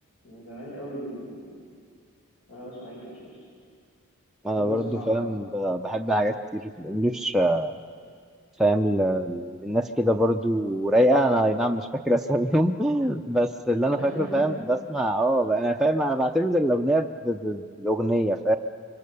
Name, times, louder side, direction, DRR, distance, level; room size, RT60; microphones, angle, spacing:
voice 1, 0.2-1.5 2.5-3.4 4.5-5.3 14.0-14.5, equal, 80° left, -5 dB, 6.0 m, -38 dB
voice 2, 4.4-7.8 8.6-18.6, right 1 dB, ahead, 1 dB, 0.5 m, -24 dB
26.0 x 24.0 x 6.9 m, 2.2 s
head